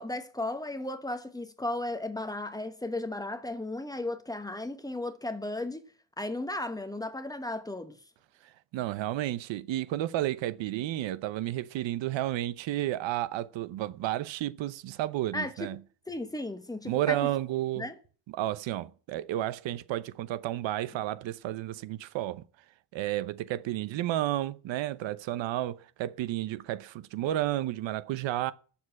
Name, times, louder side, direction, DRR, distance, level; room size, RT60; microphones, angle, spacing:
voice 1, 0.0-5.9 6.2-8.0 15.3-15.7 16.1-17.2 17.8-18.0, left 2 dB, 10° left, 1.1 m, -35 dB
voice 2, 8.4-15.8 16.8-17.9 18.3-22.4 22.9-28.5, right 14 dB, 80° right, 0.8 m, -32 dB
8.2 x 7.2 x 8.6 m
cardioid pair, 130°, 45 cm